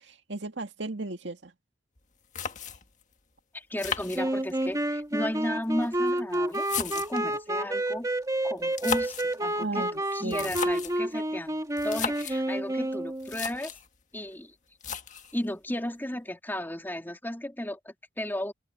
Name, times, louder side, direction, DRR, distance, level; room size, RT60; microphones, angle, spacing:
voice 1, 0.0-1.5 9.6-10.5, right 2 dB, 80° right, 2.1 m, -36 dB
sound 1, 2.0-2.1 2.3-3.0 3.8-4.7 5.6-7.3 8.6-9.4 10.2-11.0 11.8-12.4 12.9-13.0 13.2-13.9 14.8-15.4, left 6 dB, 45° left, 1.6 m, -35 dB
voice 2, 3.5-8.1 8.4-13.7 14.1-14.5 15.3-18.5, left 1 dB, 10° left, 3.1 m, -34 dB
sound 2, 4.1-13.3, right 1 dB, 20° right, 1.7 m, -29 dB
head